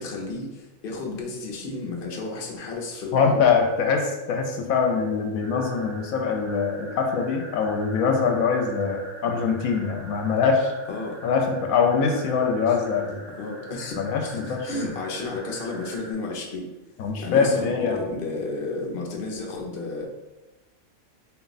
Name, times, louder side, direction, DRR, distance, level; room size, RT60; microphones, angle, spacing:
voice 1, 0.0-3.4 9.2-9.4 10.9-11.2 12.7-12.8 13.4-16.7 17.2-20.1, left 3 dB, 50° left, -1 dB, 0.8 m, -32 dB
voice 2, 3.1-10.7 11.2-13.2 14.0-14.9 17.0-18.0, left 5 dB, 80° left, 3 dB, 1.0 m, -23 dB
sound 1, 5.4-16.1, right 1 dB, 25° right, 0.8 m, -44 dB
4.1 x 2.3 x 3.9 m, 1.1 s
omnidirectional pair, 1.4 m